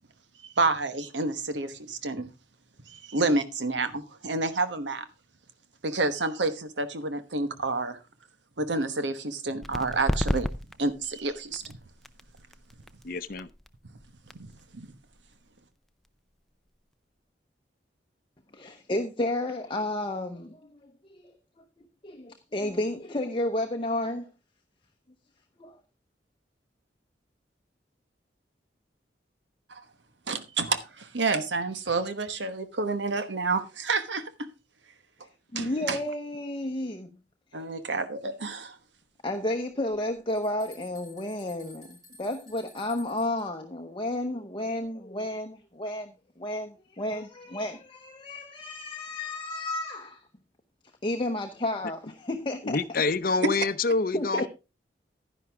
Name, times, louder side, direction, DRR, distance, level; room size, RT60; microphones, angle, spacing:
voice 1, 0.4-2.3 2.9-5.0 5.8-8.0 8.6-10.5 10.8-11.8 14.4-14.9 29.7-29.8 30.3-34.5 35.5-36.0 37.5-38.8, right 3 dB, 90° right, 1.2 m, -29 dB
sound 1, 9.6-16.9, equal, ahead, 0.5 m, -35 dB
voice 2, 13.0-13.5 52.6-54.5, left 3 dB, 55° left, 0.7 m, -27 dB
voice 3, 18.5-21.3 22.0-24.3 25.6-25.8 35.5-37.2 37.5-37.6 39.2-50.2 51.0-52.8 54.1-54.5, left 1 dB, 30° left, 0.9 m, -32 dB
sound 2, 39.9-43.4, left 1 dB, 20° right, 5.7 m, -53 dB
11.0 x 10.5 x 3.5 m
head